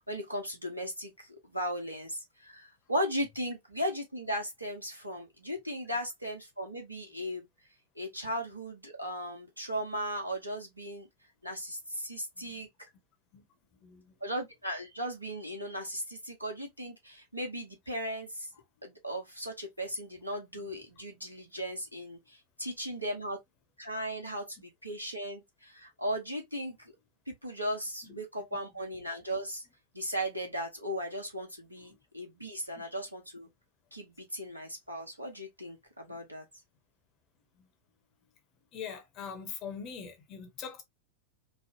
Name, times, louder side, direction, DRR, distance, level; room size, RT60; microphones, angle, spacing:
voice 1, 0.1-7.5 8.0-11.1 11.4-12.7 14.2-18.5 18.8-23.4 23.8-26.8 27.3-29.6 29.9-33.5 33.9-36.4, equal, 85° right, 0.9 m, -37 dB
voice 2, 13.8-14.1 20.5-20.6 28.0-28.2 31.8-32.0 32.7-32.8 36.1-36.2 37.5-37.7 38.7-40.8, left 7 dB, 35° left, 0.9 m, -43 dB
3.3 x 2.1 x 2.6 m
figure-of-eight pair, 90°, 0 cm